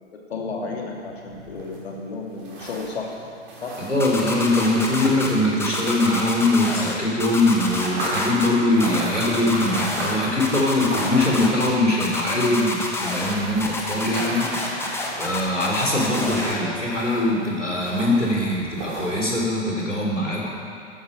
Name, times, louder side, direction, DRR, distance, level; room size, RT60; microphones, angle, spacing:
voice 1, 0.3-3.3 3.6-3.7, left 3 dB, 60° left, -1 dB, 2.7 m, -32 dB
sound 1, 0.9-6.9 7.2-19.4, right 1 dB, 30° right, 3.7 m, -36 dB
voice 2, 3.9-14.5 15.2-20.5, left 1 dB, 90° left, -3 dB, 3.4 m, -22 dB
sound 2, 4.0-5.3 5.6-6.9 7.2-8.5 8.8-10.1 10.4-11.7 12.0-13.3 13.6-16.5, left 2 dB, 5° left, 1.2 m, -28 dB
13.5 x 11.0 x 5.2 m, 2.3 s
figure-of-eight pair, 110°, 35 cm